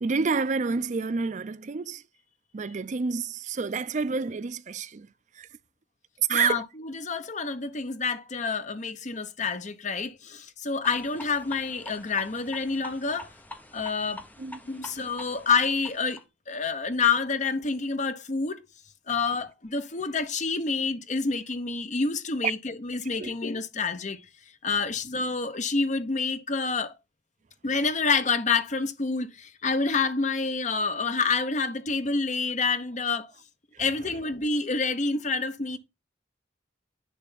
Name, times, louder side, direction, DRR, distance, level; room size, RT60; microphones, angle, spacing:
voice 1, 0.0-2.0 2.5-5.1 5.4-5.5 6.3-6.6 14.4-14.6 23.2-23.3, right 4 dB, 40° right, 0.4 m, -28 dB
voice 2, 6.3-13.3 13.7-14.2 14.7-16.2 16.5-18.6 19.1-24.3 24.6-26.9 27.6-33.3 33.8-35.8, left 4 dB, 40° left, 0.9 m, -28 dB
sound 1, 10.8-16.2, left 1 dB, 10° left, 1.0 m, -45 dB
10.0 x 3.4 x 5.8 m
head